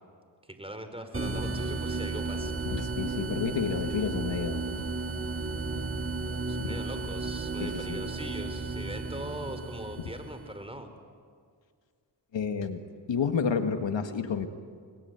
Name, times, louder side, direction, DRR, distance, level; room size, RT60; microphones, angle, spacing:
voice 1, 0.6-2.6 6.5-10.9, right 1 dB, 15° right, 8 dB, 4.6 m, -40 dB
sound 1, 1.1-10.5, right 3 dB, 30° right, 3.9 m, -34 dB
voice 2, 2.7-4.9 6.6-6.7 7.6-8.0 12.3-12.8 13.1-14.5, left 6 dB, 90° left, 8 dB, 1.8 m, -30 dB
28.5 x 22.0 x 9.4 m, 2.1 s
cardioid pair, 45°, 43 cm